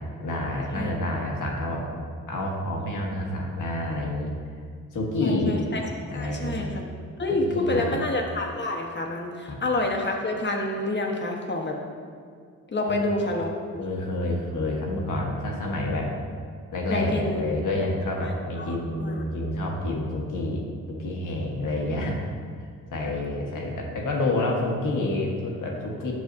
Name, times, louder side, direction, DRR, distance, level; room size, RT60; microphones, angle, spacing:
voice 1, 0.2-1.8 2.3-4.3 4.9-5.7 6.1-6.6 7.5-8.0 9.5-9.6 13.2-13.3 13.7-16.1 16.7-22.2 22.9-26.1, left 1 dB, 70° left, -1 dB, 1.3 m, -28 dB
voice 2, 5.2-5.8 6.1-6.8 7.2-11.8 12.7-13.5 16.9-17.4 18.6-19.2 23.0-23.3, left 2 dB, 35° left, 0 dB, 1.2 m, -28 dB
8.2 x 6.2 x 2.6 m, 2.2 s
cardioid pair, 65°, 33 cm